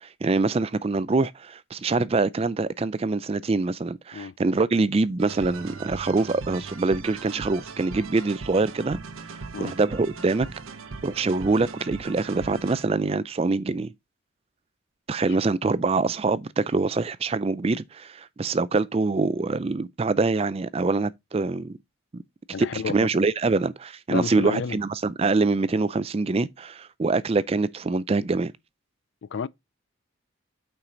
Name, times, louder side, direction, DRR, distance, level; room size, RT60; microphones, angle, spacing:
voice 1, 0.0-9.0 9.6-10.5 11.0-13.9 15.1-21.8 22.6-28.5, right 3 dB, 30° right, 0.4 m, -24 dB
sound 1, 5.2-13.1, right 4 dB, 85° right, 0.9 m, -39 dB
voice 2, 22.5-23.1 24.1-24.8 29.2-29.5, left 5 dB, 60° left, 0.4 m, -31 dB
8.7 x 4.7 x 3.8 m
head